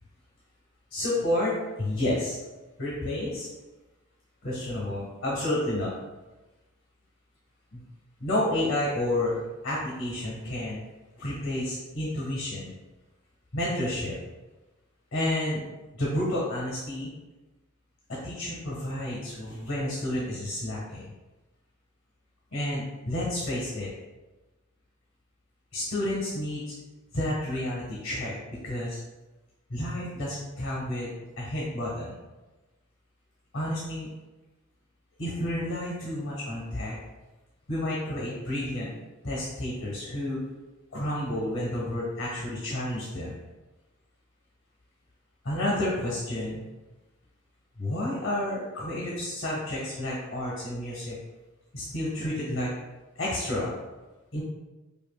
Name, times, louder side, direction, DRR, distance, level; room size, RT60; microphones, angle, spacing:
voice 1, 0.9-2.4 2.8-3.5 4.4-6.0 7.7-7.8 8.2-10.8 11.2-12.7 13.5-14.1 15.1-15.6 15.9-17.1 18.1-21.0 22.5-23.9 25.7-26.6 27.1-29.0 29.7-32.1 33.5-34.1 35.2-37.0 37.7-38.9 39.2-40.4 40.9-43.4 45.4-46.6 47.8-51.2 51.7-52.7 53.1-53.7 54.3-54.4, left 1 dB, 60° left, -5 dB, 1.1 m, -30 dB
5.3 x 2.5 x 2.3 m, 1.1 s
head